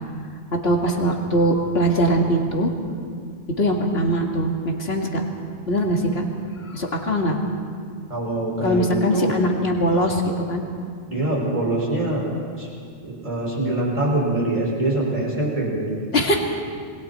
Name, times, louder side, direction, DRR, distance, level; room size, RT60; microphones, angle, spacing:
voice 1, 0.6-2.7 3.6-5.2 5.7-6.2 6.6-7.4 8.6-10.2 10.5-10.6 16.1-16.4, equal, 55° left, 1 dB, 2.4 m, -21 dB
voice 2, 8.1-9.3 11.1-12.3 12.6-12.7 13.0-15.9, right 2 dB, 25° right, -4 dB, 6.1 m, -24 dB
27.5 x 23.0 x 4.5 m, 2.2 s
omnidirectional pair, 1.3 m